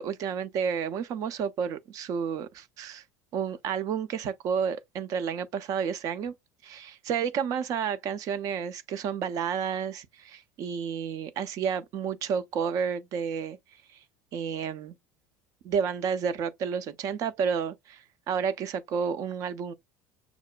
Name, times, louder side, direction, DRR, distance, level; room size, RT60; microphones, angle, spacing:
voice 1, 0.0-3.0 3.3-6.3 6.6-13.6 14.3-15.0 15.6-19.7, right 7 dB, 45° right, 0.4 m, -31 dB
5.9 x 2.1 x 2.3 m
figure-of-eight pair, 70°, 8 cm